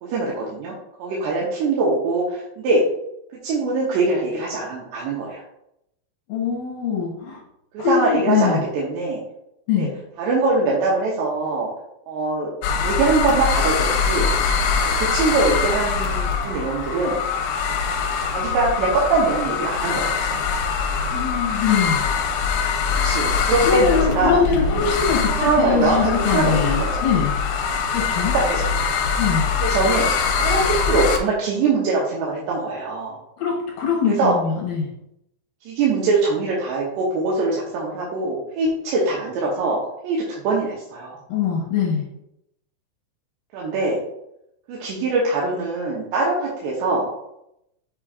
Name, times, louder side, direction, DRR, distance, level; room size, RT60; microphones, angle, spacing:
voice 1, 0.0-2.8 3.4-5.4 7.7-9.2 9.8-9.9 10.2-11.7 12.1-12.5 12.8-14.3 14.8-17.2 18.3-20.4 22.9-24.4 25.4-27.0 28.3-28.9 29.6-30.0 30.4-33.2 34.1-34.3 35.7-41.2 43.5-44.0 44.7-47.1, right 3 dB, 80° right, -4 dB, 2.9 m, -23 dB
voice 2, 6.3-7.4 7.8-8.6 9.7-9.9 21.1-22.0 23.6-27.3 27.9-28.4 29.2-29.5 33.4-34.9 41.3-42.1, left 6 dB, 70° left, -2 dB, 2.2 m, -22 dB
sound 1, 12.6-31.2, left 5 dB, 90° left, 3.0 m, -23 dB
7.4 x 5.5 x 2.5 m, 0.81 s
omnidirectional pair, 5.3 m